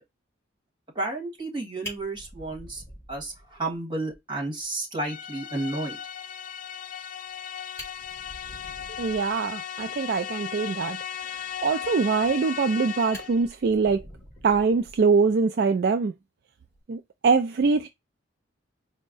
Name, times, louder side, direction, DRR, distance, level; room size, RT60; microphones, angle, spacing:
voice 1, 0.9-2.8 3.1-6.0, right 2 dB, 25° right, 1.7 m, -32 dB
Fire, 1.4-1.5 1.8-3.8 4.1-4.2 4.6-4.7 5.0-5.1 7.3-7.4 7.7-9.4 12.2-12.7 13.1-15.3 16.6-16.8, left 1 dB, 15° left, 1.8 m, -45 dB
sound 1, 5.0-13.5, left 9 dB, 40° left, 0.3 m, -36 dB
voice 2, 9.0-11.0 11.2-14.0 14.4-16.1 16.9-17.9, right 4 dB, 50° right, 0.3 m, -23 dB
4.5 x 2.1 x 3.9 m
head